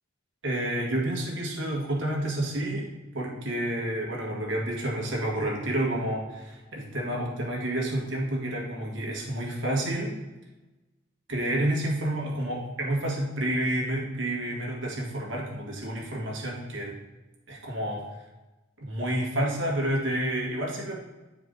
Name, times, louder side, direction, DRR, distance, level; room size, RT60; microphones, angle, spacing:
voice 1, 0.4-2.9 3.1-10.1 11.3-16.9 17.5-18.0 18.8-21.0, right 1 dB, 75° right, -2 dB, 2.0 m, -29 dB
9.2 x 4.9 x 3.9 m, 1.1 s
head